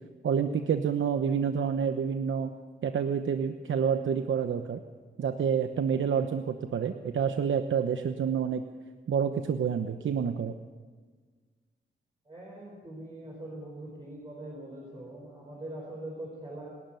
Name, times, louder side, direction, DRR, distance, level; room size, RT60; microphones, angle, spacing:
voice 1, 0.2-2.5 2.8-4.8 5.2-8.6 9.1-10.5, right 7 dB, 85° right, 8 dB, 1.0 m, -28 dB
voice 2, 12.3-16.7, right 1 dB, 25° right, -3 dB, 4.9 m, -42 dB
29.0 x 12.5 x 9.2 m, 1.5 s
wide cardioid pair, 165°, 20 cm